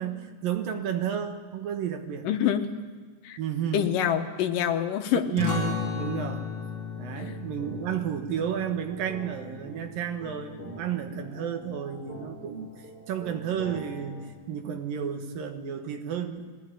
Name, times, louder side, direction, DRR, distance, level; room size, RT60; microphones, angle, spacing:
voice 1, 0.0-2.3 3.4-3.9 5.3-6.5 7.0-16.5, right 8 dB, 70° right, 6 dB, 3.1 m, -32 dB
voice 2, 2.2-2.6 3.2-3.4 3.7-5.3 7.2-7.3, left 9 dB, 70° left, 7 dB, 2.6 m, -26 dB
sound 1, 5.4-10.6, left 6 dB, 55° left, 2.4 m, -35 dB
sound 2, 6.6-14.3, equal, 5° right, 5.2 m, -45 dB
22.0 x 17.0 x 9.9 m, 1.5 s
omnidirectional pair, 4.2 m